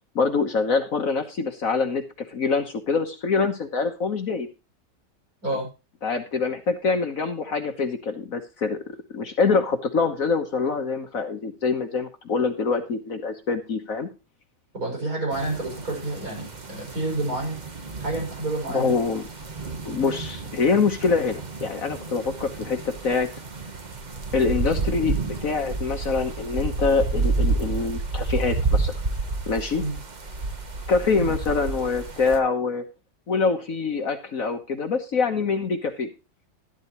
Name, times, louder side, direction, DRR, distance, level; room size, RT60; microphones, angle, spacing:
voice 1, 0.1-4.5 6.0-14.1 18.7-19.2 19.8-23.3 24.3-28.9 29.5-29.8 30.9-32.8 33.3-36.1, left 4 dB, 55° left, 6 dB, 1.5 m, -25 dB
voice 2, 14.7-17.6 18.0-19.0 29.8-30.0 31.2-31.3, right 2 dB, 55° right, 0 dB, 6.8 m, -29 dB
sound 1, 15.3-32.4, right 3 dB, 30° right, 1.0 m, -30 dB
12.0 x 12.0 x 3.0 m, 0.29 s
omnidirectional pair, 1.9 m